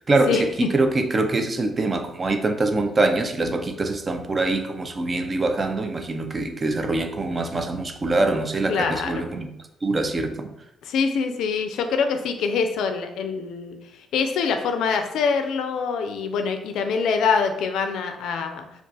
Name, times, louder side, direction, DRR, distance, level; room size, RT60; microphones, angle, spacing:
voice 1, 0.0-9.5 9.8-10.5, right 2 dB, 30° right, 6 dB, 0.4 m, -24 dB
voice 2, 8.7-9.2 10.8-13.8 14.1-18.7, left 5 dB, 80° left, 6 dB, 0.4 m, -24 dB
2.3 x 2.3 x 3.8 m, 0.83 s
cardioid pair, 90°, 0 cm